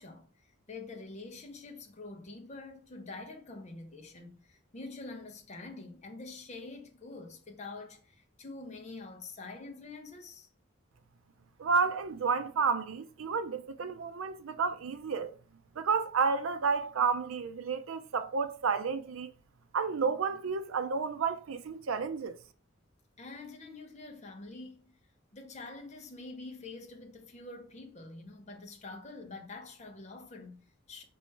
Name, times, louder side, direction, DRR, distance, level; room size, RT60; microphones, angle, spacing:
voice 1, 0.0-10.5 23.2-24.9 25.3-31.0, left 3 dB, 35° left, 0.7 m, -46 dB
voice 2, 11.6-15.3 15.8-19.3 19.7-22.4, right 5 dB, 90° right, 0.5 m, -31 dB
4.4 x 3.1 x 3.1 m
head